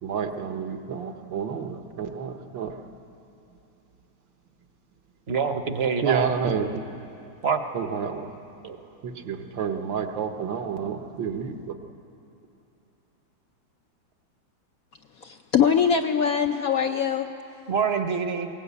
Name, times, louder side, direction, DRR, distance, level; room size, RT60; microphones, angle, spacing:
voice 1, 0.0-3.0 6.0-7.0 7.7-8.4 9.0-11.8, right 6 dB, 75° right, 6 dB, 1.8 m, -30 dB
voice 2, 5.3-6.3 7.4-7.6 8.6-8.8 17.7-18.5, right 6 dB, 40° right, 7 dB, 1.0 m, -25 dB
voice 3, 15.2-17.3, left 7 dB, 65° left, 5 dB, 0.9 m, -22 dB
21.5 x 18.0 x 8.3 m, 3.0 s
omnidirectional pair, 2.1 m